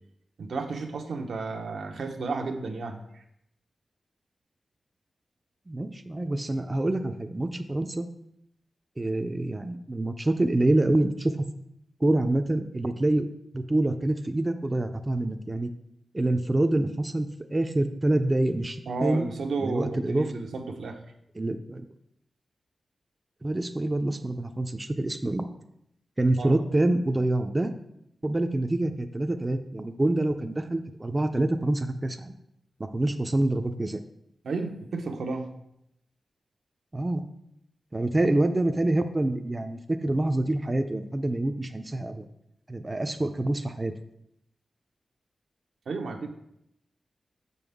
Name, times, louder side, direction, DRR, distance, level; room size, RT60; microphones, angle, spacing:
voice 1, 0.4-3.2 18.9-21.0 26.4-26.6 34.4-35.5 45.9-46.3, right 3 dB, 90° right, 4 dB, 0.7 m, -32 dB
voice 2, 5.7-8.1 9.0-11.3 12.0-13.3 13.5-15.7 16.1-19.3 19.6-20.3 21.4-21.9 23.4-25.5 26.2-27.7 28.2-32.3 32.8-34.0 36.9-37.2 37.9-42.3 42.7-43.9, right 1 dB, 20° right, 7 dB, 0.3 m, -26 dB
6.5 x 5.4 x 3.5 m, 0.77 s
wide cardioid pair, 170°, 0 cm